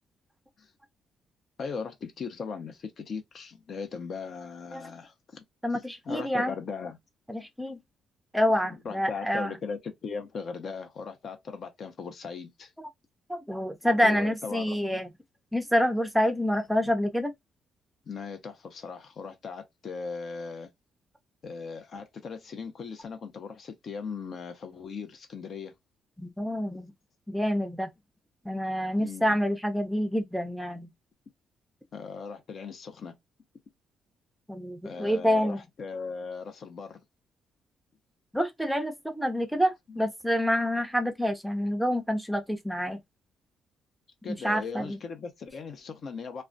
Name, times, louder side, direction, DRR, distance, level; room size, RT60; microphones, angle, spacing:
voice 1, 1.6-5.4 6.1-7.0 8.6-12.7 14.0-15.0 18.1-20.7 21.4-25.7 29.0-29.4 31.9-33.1 34.8-37.0 39.9-40.1 44.2-46.4, left 5 dB, 55° left, 0.6 m, -38 dB
voice 2, 5.6-6.5 7.3-7.8 8.3-9.5 13.3-15.1 15.5-17.3 26.2-26.9 27.3-27.9 28.4-30.9 34.5-35.6 38.3-43.0 44.3-45.0, equal, 5° right, 0.5 m, -27 dB
2.3 x 2.1 x 2.5 m
cardioid pair, 90°, 0 cm